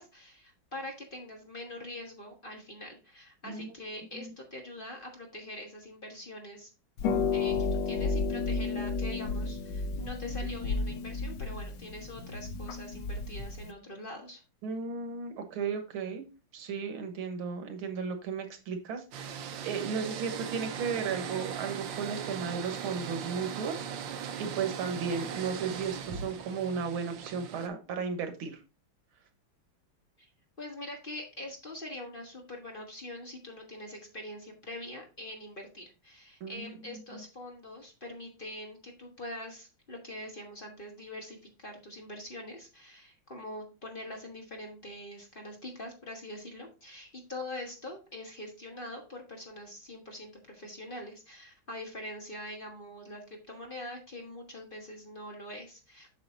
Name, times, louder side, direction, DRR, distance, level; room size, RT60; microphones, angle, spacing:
voice 1, 0.0-6.7 7.3-14.4 30.2-30.3 30.6-56.2, left 1 dB, 30° left, 1 dB, 1.4 m, -43 dB
Harp, 7.0-13.7, left 4 dB, 70° left, 1.3 m, -32 dB
voice 2, 14.6-16.2 16.5-23.9 24.4-28.6 36.4-37.2, right 5 dB, 90° right, 6 dB, 2.1 m, -35 dB
sound 1, 19.1-27.7, right 7 dB, 70° right, 1.4 m, -39 dB
7.7 x 6.7 x 2.7 m, 0.30 s
omnidirectional pair, 2.2 m